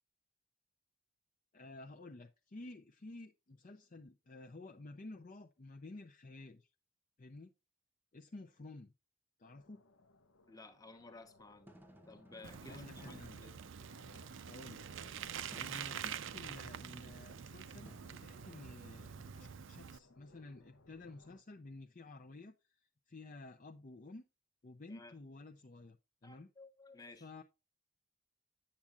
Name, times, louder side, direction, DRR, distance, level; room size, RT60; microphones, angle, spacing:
voice 1, 1.5-6.7 7.2-7.5 8.1-8.9 9.4-9.8 12.7-13.4 14.5-14.8 15.5-22.8 23.1-24.2 24.6-26.0 26.2-26.5 27.2-27.4, left 2 dB, 35° left, 0.5 m, -52 dB
sound 1, 9.4-21.4, left 2 dB, 75° left, 0.9 m, -64 dB
voice 2, 10.5-11.7 12.1-13.5 19.4-19.5 24.9-25.1 26.2-27.3, left 3 dB, 15° left, 1.1 m, -55 dB
sound 2, 11.5-14.3 15.5-15.9 17.9-18.9, equal, 10° right, 0.7 m, -60 dB
Bicycle, 12.4-20.0, right 8 dB, 65° right, 0.5 m, -46 dB
8.6 x 7.3 x 2.4 m
head